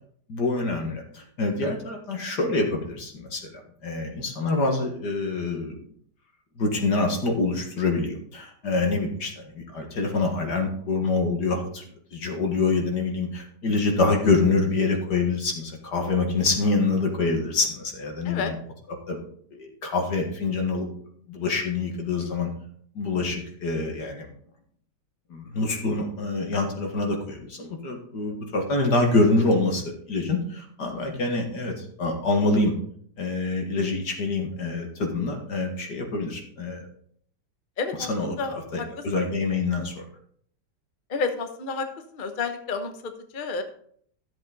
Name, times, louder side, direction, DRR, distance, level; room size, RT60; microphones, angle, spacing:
voice 1, 0.3-5.8 6.6-11.8 12.1-18.6 19.1-19.2 19.5-20.9 21.3-22.5 23.0-24.3 25.3-29.8 30.1-32.7 33.2-36.8 38.0-40.0, left 3 dB, 75° left, 2 dB, 2.5 m, -26 dB
voice 2, 37.8-39.0 41.1-41.9 42.1-43.6, left 4 dB, 35° left, 7 dB, 0.9 m, -30 dB
13.5 x 7.5 x 4.0 m, 0.62 s
omnidirectional pair, 1.8 m